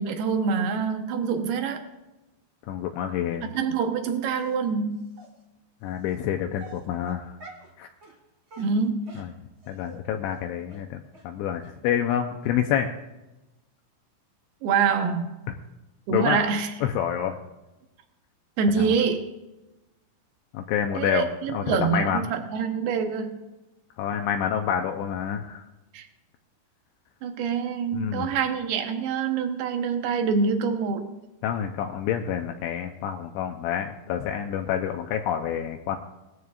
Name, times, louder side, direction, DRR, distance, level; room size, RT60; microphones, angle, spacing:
voice 1, 0.0-1.8 3.4-5.1 8.6-9.1 14.6-15.3 16.1-16.7 18.6-19.2 20.9-23.4 25.9-26.1 27.2-31.1, right 6 dB, 75° right, 5 dB, 2.4 m, -25 dB
voice 2, 2.7-3.5 5.8-7.4 7.8-7.9 9.2-9.3 9.7-12.9 16.1-16.4 16.8-17.4 18.8-18.9 20.5-21.3 21.5-22.3 24.0-25.6 27.9-28.3 31.4-36.0, left 9 dB, 80° left, 4 dB, 2.8 m, -28 dB
Dog, 4.2-4.6 5.2-5.3 6.1-6.2 6.6-7.7 8.0-8.2 8.5-10.0 10.3-10.4 10.7-10.8 11.1-11.2 11.6-11.7 12.1-12.2 12.4-12.5, right 2 dB, 40° right, 1.8 m, -47 dB
21.0 x 14.0 x 2.5 m, 1.0 s
omnidirectional pair, 5.8 m